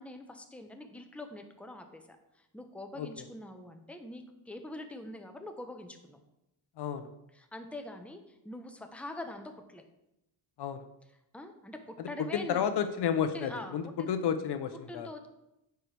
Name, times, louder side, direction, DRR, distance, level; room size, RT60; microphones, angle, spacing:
voice 1, 0.0-6.2 7.3-9.8 11.3-12.7 13.3-14.1 14.9-15.3, left 1 dB, 5° left, 5 dB, 0.8 m, -44 dB
voice 2, 6.8-7.1 10.6-10.8 12.0-15.1, left 8 dB, 60° left, 9 dB, 0.7 m, -31 dB
9.2 x 4.6 x 3.3 m, 0.87 s
cardioid pair, 85°, 46 cm